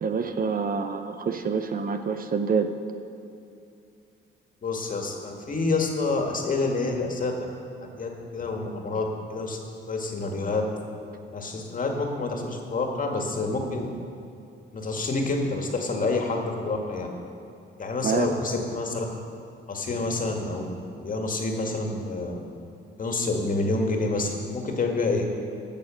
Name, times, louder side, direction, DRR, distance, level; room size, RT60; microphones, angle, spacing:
voice 1, 0.0-2.7 18.0-18.3, right 5 dB, 45° right, 7 dB, 0.8 m, -27 dB
voice 2, 4.6-7.4 7.8-9.6 9.9-10.7 11.3-13.9 14.7-17.1 17.8-19.1 19.7-22.4 23.0-25.2, left 3 dB, 40° left, 2 dB, 1.9 m, -28 dB
15.5 x 6.7 x 6.4 m, 2.6 s
cardioid pair, 90°, 20 cm